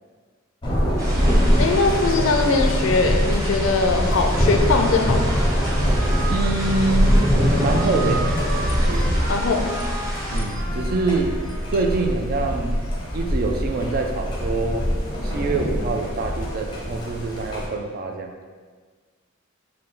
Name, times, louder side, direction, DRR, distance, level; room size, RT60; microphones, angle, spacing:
Thunder, 0.6-17.7, equal, 25° left, 0.6 m, -23 dB
sound 1, 1.0-10.4, right 1 dB, 15° right, 0.7 m, -33 dB
voice 1, 1.6-5.4 9.3-9.8, left 3 dB, 70° left, 5 dB, 0.4 m, -21 dB
Trumpet, 4.6-11.9, right 2 dB, 65° right, 0.9 m, -35 dB
voice 2, 6.3-7.2 7.6-8.2 8.9-9.3 10.3-11.3 11.7-12.9 13.1-14.9 15.2-18.3, right 3 dB, 45° right, 4 dB, 0.3 m, -25 dB
3.9 x 2.2 x 3.7 m, 1.5 s
head